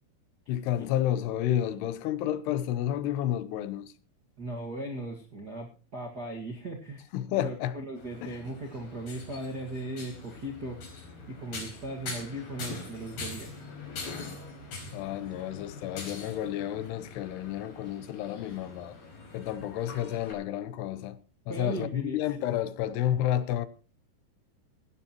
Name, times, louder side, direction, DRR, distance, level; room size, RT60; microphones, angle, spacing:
voice 1, 0.5-3.9 7.1-7.8 8.2-8.4 14.9-19.0 19.3-21.2 21.5-23.7, left 11 dB, 80° left, 2.7 m, -31 dB
voice 2, 4.4-7.1 7.3-10.8 11.3-13.5 21.5-22.2, right 1 dB, 50° right, 1.1 m, -38 dB
sound 1, 8.0-20.3, left 3 dB, 60° left, 6.5 m, -43 dB
17.0 x 16.0 x 3.0 m
omnidirectional pair, 5.0 m